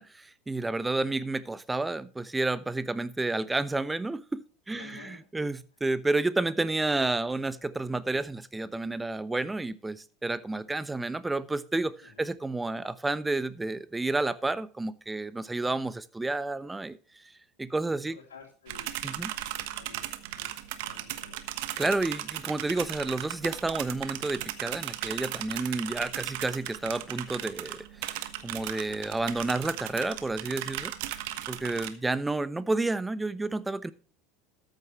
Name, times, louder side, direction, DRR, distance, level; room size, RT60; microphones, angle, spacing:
voice 1, 0.0-17.0 17.6-18.2 19.0-19.3 21.8-30.9 31.5-33.9, right 2 dB, 10° right, 0.9 m, -30 dB
voice 2, 4.7-5.3 12.0-12.2 17.9-21.6, left 5 dB, 80° left, 2.9 m, -53 dB
sound 1, 18.7-31.9, right 14 dB, 65° right, 1.2 m, -37 dB
13.5 x 9.2 x 3.1 m
hypercardioid pair, 80°, 0 cm